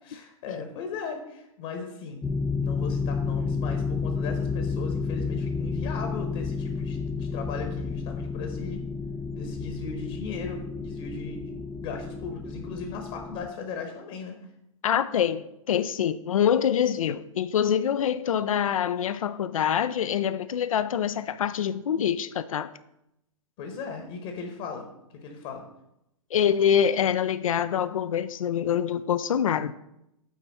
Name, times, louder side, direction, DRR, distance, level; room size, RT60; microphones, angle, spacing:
voice 1, 0.0-2.2 2.6-8.8 9.3-11.5 11.8-14.4 23.6-24.9 25.1-25.6, left 5 dB, 45° left, 1.1 m, -37 dB
sound 1, 2.2-13.5, left 4 dB, 5° left, 0.4 m, -31 dB
voice 2, 14.8-22.7 26.3-29.7, left 8 dB, 75° left, 0.4 m, -25 dB
8.3 x 4.6 x 4.0 m
hypercardioid pair, 115°, 18 cm